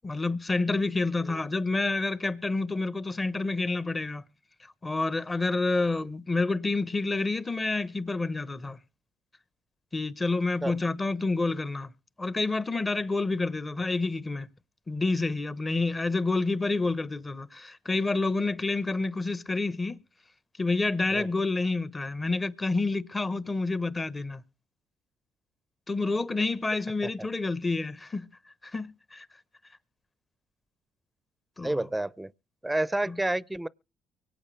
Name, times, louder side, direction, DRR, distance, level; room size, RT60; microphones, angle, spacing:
voice 1, 0.0-4.2 4.8-8.8 9.9-11.9 12.2-14.5 14.9-20.0 20.6-24.4 25.9-28.3 28.7-29.3 31.6-31.9 33.1-33.2, left 3 dB, 25° left, 1.2 m, -28 dB
voice 2, 31.6-32.3 32.6-33.7, right 1 dB, 10° right, 0.7 m, -30 dB
24.5 x 8.4 x 3.4 m
supercardioid pair, 75°, 0 cm